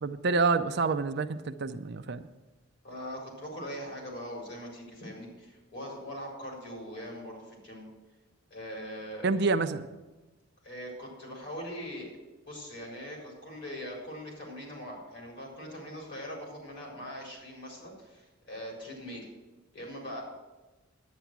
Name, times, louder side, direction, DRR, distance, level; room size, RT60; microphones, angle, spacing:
voice 1, 0.0-2.2 9.2-9.9, right 4 dB, 50° right, 0.5 m, -28 dB
voice 2, 2.8-7.8 8.5-9.3 10.6-12.1 12.5-19.3 19.7-20.2, equal, 50° left, 4.3 m, -41 dB
10.5 x 9.1 x 6.0 m
head